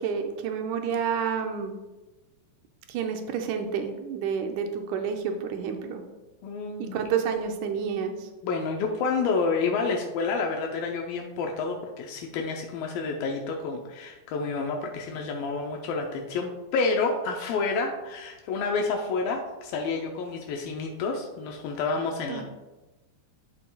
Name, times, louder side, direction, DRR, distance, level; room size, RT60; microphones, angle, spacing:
voice 1, 0.0-1.8 2.9-6.0 6.8-8.3 22.3-22.4, right 7 dB, 80° right, 4 dB, 1.8 m, -29 dB
voice 2, 6.4-7.0 8.4-22.4, left 4 dB, 80° left, 1 dB, 2.4 m, -29 dB
12.0 x 5.5 x 2.3 m, 1.1 s
omnidirectional pair, 4.1 m